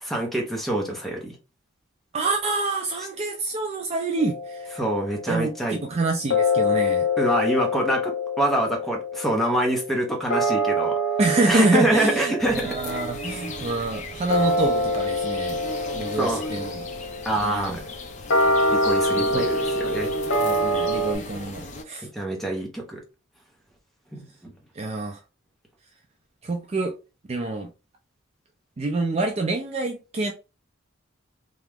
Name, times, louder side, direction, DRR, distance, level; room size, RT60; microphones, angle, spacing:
voice 1, 0.0-1.3 4.7-5.8 7.2-11.0 11.5-12.8 16.1-16.4 17.2-17.8 18.7-20.1 22.1-23.0 24.1-24.5, right 1 dB, ahead, 0.8 m, -25 dB
voice 2, 2.1-4.8 5.3-7.1 11.2-15.6 15.9-16.9 17.4-17.8 19.2-19.5 20.4-22.1 24.8-25.2 26.4-27.0 27.3-27.7 28.8-30.3, right 2 dB, 30° right, 0.3 m, -27 dB
sound 1, 4.2-5.5 6.3-21.1, left 1 dB, 80° left, 0.9 m, -26 dB
sound 2, 12.4-21.8, left 3 dB, 35° left, 0.5 m, -36 dB
2.9 x 2.4 x 3.4 m
head